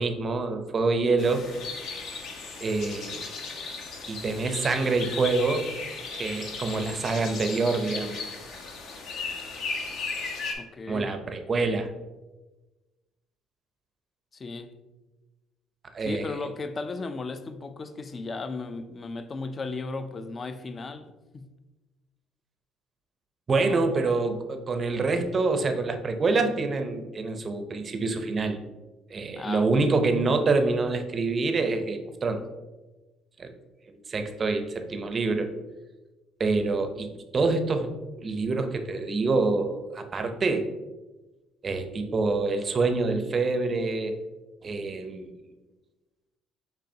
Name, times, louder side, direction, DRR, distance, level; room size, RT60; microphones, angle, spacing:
voice 1, 0.0-1.4 2.6-3.3 4.1-5.7 6.1-8.2 10.9-11.9 15.9-16.3 23.5-28.6 29.1-32.4 33.4-33.5 34.1-35.5 36.4-37.9 38.2-40.7 41.6-44.2 44.6-45.3, right 3 dB, 35° right, 0.5 m, -26 dB
sound 1, 1.2-10.5, left 4 dB, 65° left, 0.8 m, -36 dB
voice 2, 10.6-11.1 14.3-14.8 16.0-21.5 23.6-23.8 29.3-29.9, left 3 dB, 30° left, 0.4 m, -36 dB
6.8 x 2.8 x 2.7 m
cardioid pair, 100°, 0 cm